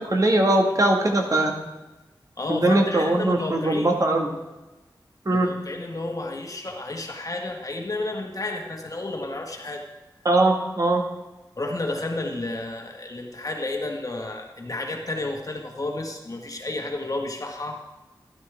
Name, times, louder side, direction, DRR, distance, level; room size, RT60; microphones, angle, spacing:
voice 1, 0.0-1.5 2.5-4.3 5.2-5.5 10.2-11.0, right 2 dB, 45° right, 2 dB, 1.6 m, -21 dB
voice 2, 2.4-3.9 5.3-9.8 11.6-17.8, left 2 dB, 45° left, 2 dB, 1.5 m, -31 dB
12.5 x 11.5 x 3.5 m, 1.1 s
wide cardioid pair, 65°, 8 cm